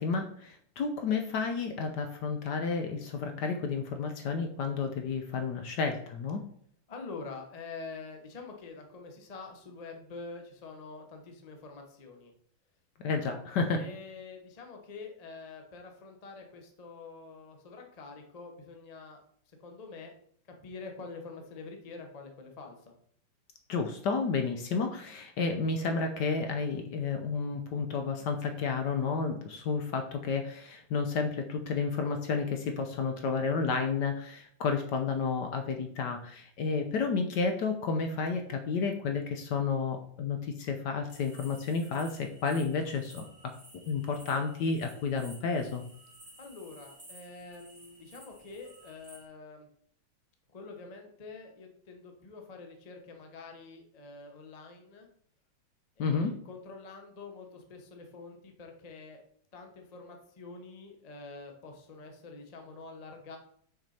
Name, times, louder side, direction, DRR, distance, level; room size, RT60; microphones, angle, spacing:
voice 1, 0.0-6.4 13.0-13.8 23.7-43.5 43.9-45.8 56.0-56.3, left 5 dB, 70° left, 5 dB, 1.1 m, -31 dB
voice 2, 6.9-12.3 13.7-20.1 20.6-22.9 46.4-49.7 50.5-55.1 56.0-59.2 59.5-63.4, left 4 dB, 35° left, 3 dB, 0.6 m, -46 dB
sound 1, 41.1-49.3, right 1 dB, 20° right, 2.7 m, -55 dB
6.1 x 5.2 x 4.2 m, 0.62 s
omnidirectional pair, 2.2 m